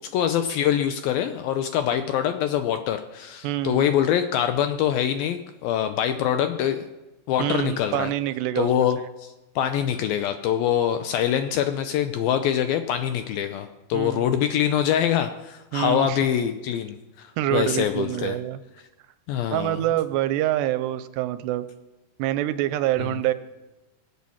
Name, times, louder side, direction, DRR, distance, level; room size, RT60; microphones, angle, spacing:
voice 1, 0.1-6.9 7.3-8.1 8.6-18.4 19.3-19.8 23.0-23.1, left 10 dB, 80° left, 8 dB, 2.1 m, -24 dB
voice 2, 3.4-3.9 7.4-8.9 13.9-14.3 15.7-16.2 17.4-18.6 19.5-21.7 22.2-23.3, right 14 dB, 90° right, 13 dB, 2.9 m, -26 dB
21.5 x 8.4 x 7.2 m, 1.0 s
omnidirectional pair, 4.8 m